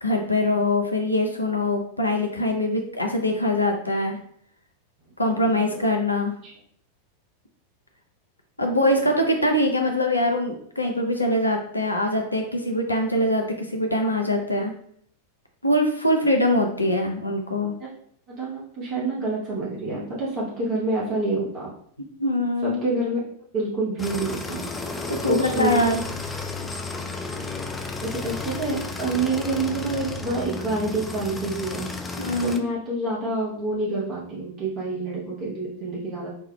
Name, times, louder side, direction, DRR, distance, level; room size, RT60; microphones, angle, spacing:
voice 1, 0.0-4.2 5.2-6.3 8.6-14.7 15.6-17.8 22.0-22.8 25.1-26.0 32.2-32.6, left 1 dB, 85° left, 3 dB, 0.4 m, -23 dB
voice 2, 5.3-5.9 8.8-9.0 17.8-17.9 18.4-21.7 22.6-23.2 23.5-24.6 25.2-26.1 28.0-31.9 32.4-36.3, right 2 dB, 35° right, -6 dB, 1.0 m, -27 dB
sound 1, 24.0-32.6, left 3 dB, 10° left, 0.3 m, -33 dB
4.4 x 2.3 x 2.2 m, 0.64 s
figure-of-eight pair, 90°, 0 cm